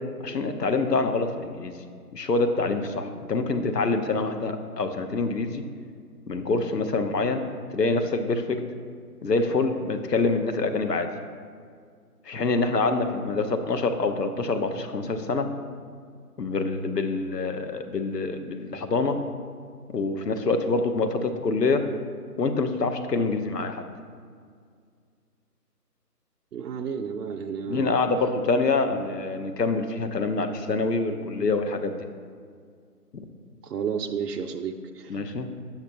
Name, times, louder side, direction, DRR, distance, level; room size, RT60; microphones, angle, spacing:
voice 1, 0.2-1.8 2.1-5.6 6.3-7.5 7.7-8.6 9.2-11.1 12.3-15.5 16.4-19.2 19.9-21.8 22.4-23.9 27.7-32.0 33.1-33.2 35.1-35.5, left 3 dB, 85° left, 7 dB, 0.8 m, -26 dB
voice 2, 26.5-27.9 28.9-29.0 33.6-35.2, right 6 dB, 75° right, 4 dB, 0.5 m, -32 dB
6.7 x 5.8 x 2.9 m, 2.1 s
figure-of-eight pair, 165°, 48 cm